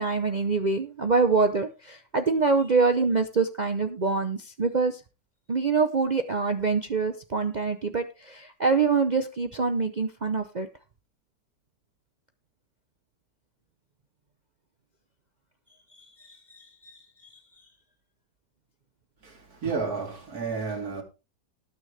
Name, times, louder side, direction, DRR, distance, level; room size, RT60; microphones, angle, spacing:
voice 1, 0.0-5.0 5.5-10.7 16.2-17.0, right 4 dB, 75° right, 0.4 m, -25 dB
voice 2, 19.2-21.0, right 4 dB, 50° right, 3.3 m, -31 dB
19.5 x 6.5 x 3.3 m
omnidirectional pair, 2.0 m